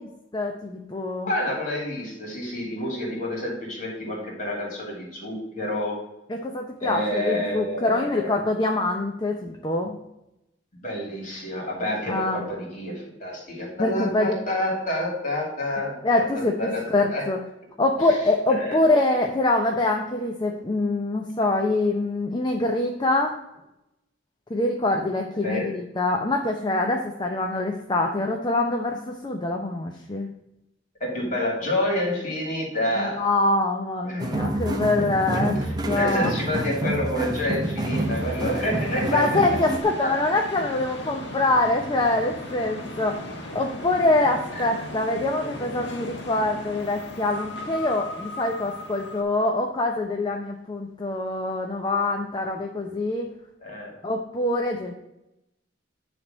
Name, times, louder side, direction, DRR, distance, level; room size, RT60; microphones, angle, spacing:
voice 1, 0.3-1.3 6.3-9.9 12.1-12.4 13.8-14.3 16.0-17.4 17.8-23.4 24.5-30.3 33.0-35.5 35.8-36.3 39.1-53.3 54.0-54.9, left 2 dB, 25° left, 2 dB, 0.6 m, -24 dB
voice 2, 1.3-6.0 6.8-8.4 10.8-17.2 18.5-18.8 25.3-25.8 31.0-33.3 34.0-34.3 35.3-39.4 40.0-40.2 44.2-44.3 44.5-44.7 53.6-54.0, left 1 dB, 40° left, -2 dB, 2.9 m, -28 dB
sound 1, 34.2-39.8, right 1 dB, 20° right, 0.8 m, -28 dB
sound 2, 37.8-49.2, left 1 dB, 65° left, 1.4 m, -37 dB
9.9 x 3.5 x 5.2 m, 0.88 s
head